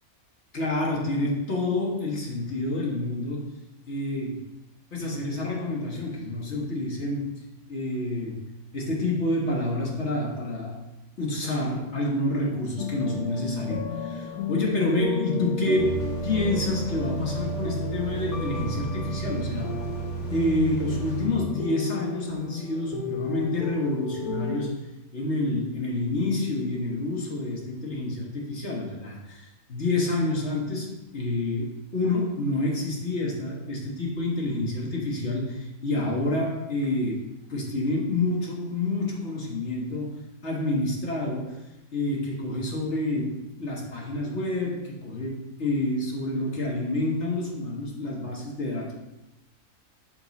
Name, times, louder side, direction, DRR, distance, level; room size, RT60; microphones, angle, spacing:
voice 1, 0.5-3.6 3.9-4.4 4.9-7.4 7.7-10.8 11.2-19.8 20.3-24.8 25.1-41.6 41.9-49.0, left 2 dB, 50° left, -2 dB, 1.6 m, -28 dB
sound 1, 12.8-24.7, left 6 dB, 80° left, 1.2 m, -34 dB
sound 2, 15.8-21.3, right 5 dB, 30° left, 1.3 m, -33 dB
7.4 x 3.7 x 4.0 m, 0.96 s
omnidirectional pair, 1.5 m